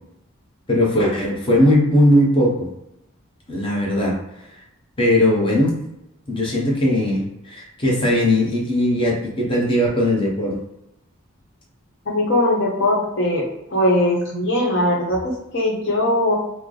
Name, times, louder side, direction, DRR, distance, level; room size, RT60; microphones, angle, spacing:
voice 1, 0.7-2.7 3.5-4.2 5.0-5.8 6.3-10.6, left 1 dB, 25° left, -3 dB, 0.8 m, -19 dB
voice 2, 12.1-13.4 13.7-16.4, left 1 dB, 60° left, -2 dB, 1.0 m, -20 dB
3.2 x 2.0 x 3.8 m, 0.87 s
head